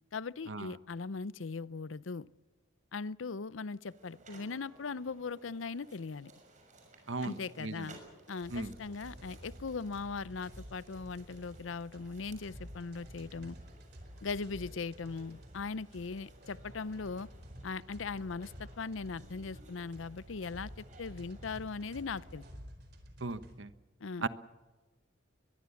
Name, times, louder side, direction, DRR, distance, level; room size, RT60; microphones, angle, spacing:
voice 1, 0.1-2.3 2.9-6.3 7.2-8.0 8.3-13.6 14.2-17.3 17.6-22.4 24.0-24.3, left 4 dB, 90° left, 19 dB, 0.6 m, -39 dB
sound 1, 3.9-22.5, right 2 dB, 40° right, 6.4 m, -60 dB
voice 2, 7.1-7.9 8.5-8.7 23.2-23.7 24.2-24.3, right 3 dB, 75° right, 12 dB, 1.2 m, -37 dB
sound 2, 8.4-23.5, equal, 60° right, 4.7 m, -51 dB
22.5 x 22.0 x 7.1 m, 1.2 s
head